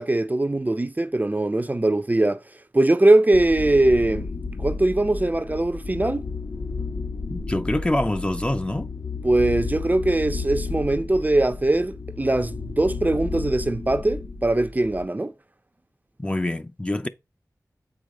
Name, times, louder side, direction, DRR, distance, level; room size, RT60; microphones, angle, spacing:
voice 1, 0.0-2.4 2.7-4.3 4.6-6.2 9.2-15.3, right 2 dB, 25° right, 0.6 m, -21 dB
sound 1, 3.3-15.1, left 4 dB, 60° left, 1.2 m, -32 dB
voice 2, 7.3-8.9 16.2-17.1, left 1 dB, 20° left, 0.6 m, -25 dB
7.8 x 4.8 x 3.7 m
wide cardioid pair, 75°, 6 cm